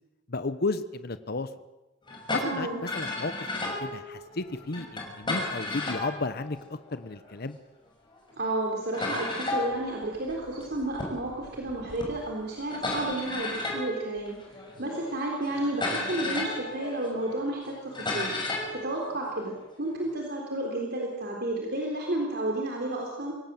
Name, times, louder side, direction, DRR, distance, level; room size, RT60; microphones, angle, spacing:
voice 1, 0.3-1.5 2.3-6.6 6.9-7.6, left 3 dB, 55° left, 11 dB, 1.0 m, -33 dB
sound 1, 2.1-7.4 8.1-8.2 8.4-8.5 8.9-20.1, left 2 dB, 25° left, 6.2 m, -35 dB
voice 2, 2.4-2.8 8.4-14.4 14.8-18.3 18.8-23.3, right 1 dB, 60° right, 0 dB, 3.8 m, -31 dB
25.0 x 17.5 x 7.7 m, 1.0 s
head